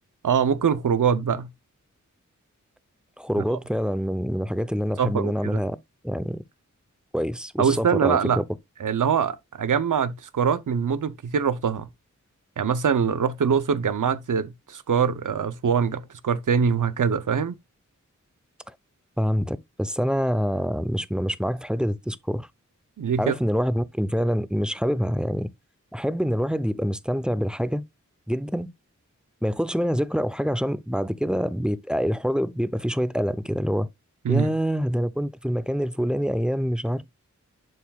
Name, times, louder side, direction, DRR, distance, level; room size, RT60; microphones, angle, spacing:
voice 1, 0.2-1.5 3.4-3.5 5.0-5.6 7.6-8.4 8.8-11.9 12.6-17.6 23.0-23.3 34.2-34.5, right 6 dB, 85° right, 0.7 m, -23 dB
voice 2, 3.2-5.8 6.0-6.4 7.1-8.4 19.2-22.5 23.2-25.5 25.9-27.8 28.3-28.7 29.4-33.9 34.3-37.0, equal, 5° right, 0.6 m, -26 dB
10.5 x 4.7 x 2.3 m
wide cardioid pair, 60°, 31 cm